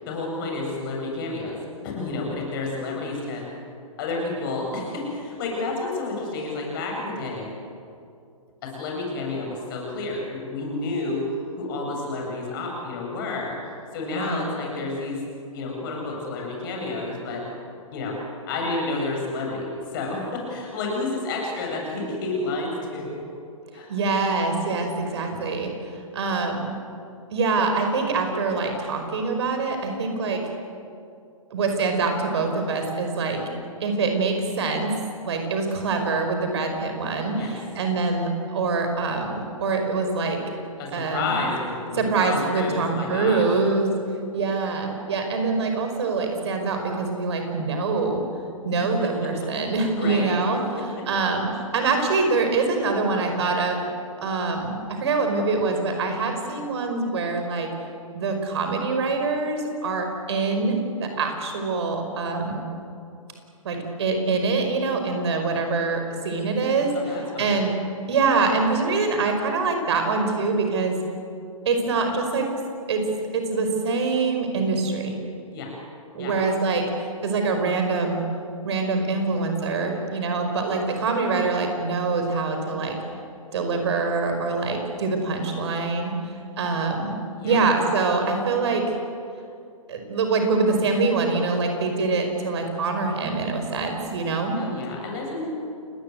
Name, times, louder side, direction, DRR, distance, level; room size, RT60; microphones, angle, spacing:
voice 1, 0.0-3.5 4.0-7.5 8.6-11.2 11.6-13.6 13.9-15.2 15.5-17.5 17.9-18.2 18.5-23.2 23.7-23.9 37.4-37.5 40.8-43.6 48.8-49.3 50.0-50.3 50.8-51.1 66.9-67.6 75.5-75.7 76.2-76.3 87.3-87.6 94.6-95.5, left 3 dB, 40° left, 0 dB, 7.8 m, -30 dB
voice 2, 14.1-14.4 23.9-26.7 27.3-30.4 31.5-33.4 33.8-34.9 35.2-40.4 40.9-41.4 42.0-43.9 44.3-48.2 48.6-50.6 51.1-53.8 54.2-57.7 58.1-62.6 63.6-67.7 68.1-71.0 71.7-72.5 72.9-73.0 73.3-75.2 76.1-78.2 78.6-83.0 83.5-86.1 86.6-87.2 87.4-89.0 89.9-94.6, right 3 dB, 50° right, 5 dB, 5.2 m, -24 dB
29.5 x 19.0 x 8.0 m, 2.5 s
figure-of-eight pair, 125°, 18 cm